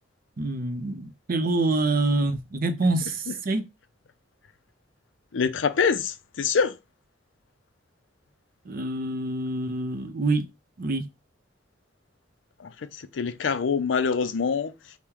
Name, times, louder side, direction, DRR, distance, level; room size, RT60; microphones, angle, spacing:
voice 1, 0.4-3.6 8.7-10.4 10.8-11.1, right 2 dB, 50° right, 0.5 m, -26 dB
voice 2, 5.3-6.8 12.6-14.7, left 5 dB, 70° left, 0.5 m, -25 dB
4.4 x 2.1 x 3.6 m
head